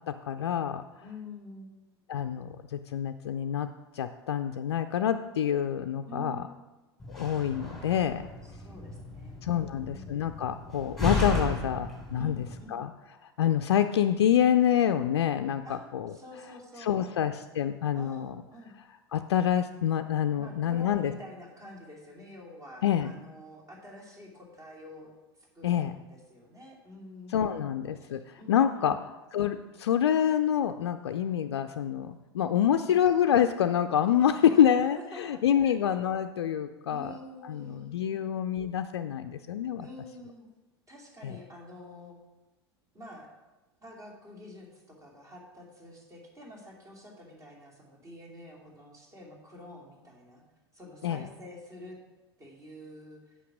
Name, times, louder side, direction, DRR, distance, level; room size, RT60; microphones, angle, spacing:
voice 1, 0.1-0.8 2.1-3.7 3.9-6.4 7.1-8.3 9.4-12.9 13.2-16.1 16.8-18.3 19.1-21.1 22.8-23.1 25.6-25.9 27.3-29.0 29.3-37.1 37.5-39.9 41.2-41.3 51.0-51.3, left 9 dB, 75° left, 8 dB, 0.4 m, -27 dB
voice 2, 1.0-1.7 6.1-6.5 8.4-10.1 12.2-12.8 15.6-17.2 17.9-18.8 20.3-25.1 25.4-29.0 32.5-33.0 34.4-35.9 36.9-38.2 39.7-40.5 40.9-42.2 42.9-43.3 43.8-50.4 50.7-52.0 52.4-53.4, left 1 dB, 25° right, -1 dB, 2.7 m, -48 dB
Slam, 7.0-12.6, left 2 dB, ahead, 3.2 m, -35 dB
8.4 x 5.4 x 6.2 m, 1.1 s
figure-of-eight pair, 85°, 14 cm